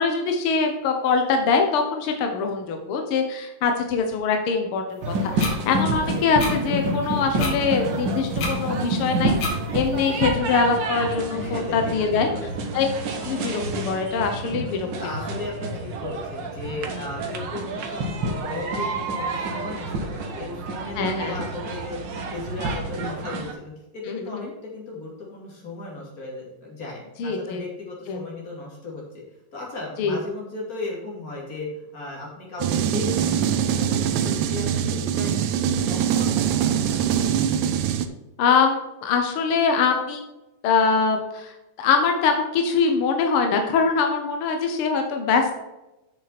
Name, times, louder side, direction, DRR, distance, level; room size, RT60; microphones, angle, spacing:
voice 1, 0.0-9.4 9.7-12.3 12.7-12.9 13.2-14.9 21.0-21.4 24.1-24.5 27.2-27.7 28.1-28.2 30.0-30.2 38.4-40.2 40.6-45.6, left 5 dB, 65° left, 4 dB, 1.4 m, -23 dB
sound 1, 5.0-23.5, right 2 dB, 60° right, 1.2 m, -29 dB
sound 2, 5.4-5.5 6.4-6.5 7.4-7.5 8.4-8.5 9.4-9.6, left 3 dB, 85° left, 3.7 m, -28 dB
voice 2, 11.3-12.7 14.7-29.2 29.5-37.2, left 3 dB, 25° left, -3 dB, 3.1 m, -36 dB
sound 3, 32.6-38.1, right 9 dB, 80° right, 2.1 m, -23 dB
8.6 x 6.7 x 4.3 m, 1.0 s
omnidirectional pair, 3.7 m